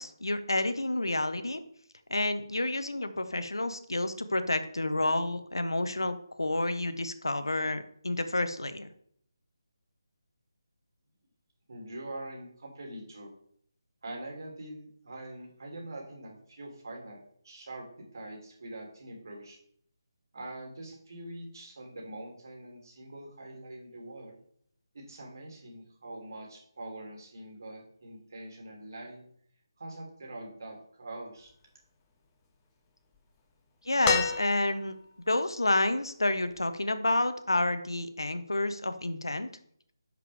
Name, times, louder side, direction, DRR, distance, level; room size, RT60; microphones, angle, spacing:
voice 1, 0.0-1.6 2.1-8.9 33.8-35.0 35.3-39.5, left 2 dB, 80° left, 10 dB, 0.8 m, -29 dB
voice 2, 11.7-13.3 14.0-17.9 18.1-19.6 20.3-24.3 24.9-29.2 29.8-31.5, right 1 dB, 55° right, 0 dB, 2.7 m, -44 dB
sound 1, 34.0-35.1 36.6-36.7, left 5 dB, 15° left, 0.9 m, -30 dB
10.5 x 5.1 x 3.4 m, 0.65 s
figure-of-eight pair, 155°, 2 cm